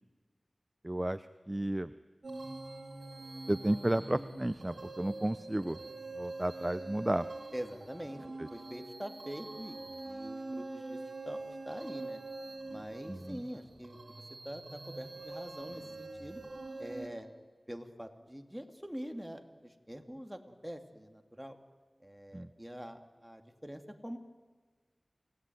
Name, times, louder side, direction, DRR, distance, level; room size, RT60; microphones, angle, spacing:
voice 1, 0.8-1.9 3.5-5.8 6.1-7.3 8.4-8.5 13.1-13.4 22.3-22.5, right 1 dB, 25° right, 13 dB, 0.7 m, -33 dB
sound 1, 2.2-17.1, right 2 dB, 80° right, 3.2 m, -44 dB
voice 2, 7.5-8.2 8.5-12.2 12.7-16.4 16.8-17.3 17.7-21.6 22.0-24.2, equal, 5° right, 6 dB, 2.5 m, -45 dB
28.5 x 18.0 x 9.3 m, 1.5 s
wide cardioid pair, 50°, 0 cm